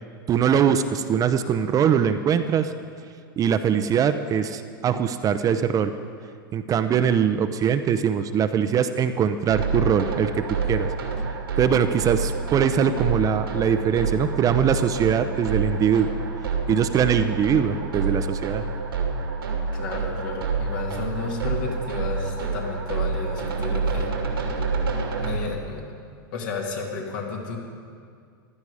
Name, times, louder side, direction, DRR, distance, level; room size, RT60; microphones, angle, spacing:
voice 1, 0.3-2.7 3.4-5.9 6.5-10.4 10.7-10.9 11.6-16.1 16.7-18.6, right 8 dB, 30° right, 9 dB, 0.7 m, -22 dB
sound 1, 9.5-25.4, right 4 dB, 80° right, 2.1 m, -28 dB
voice 2, 19.7-24.1 25.2-25.9 26.3-27.6, left 4 dB, 60° left, 0 dB, 2.6 m, -32 dB
15.5 x 11.5 x 4.9 m, 2.2 s
hypercardioid pair, 100°, 12 cm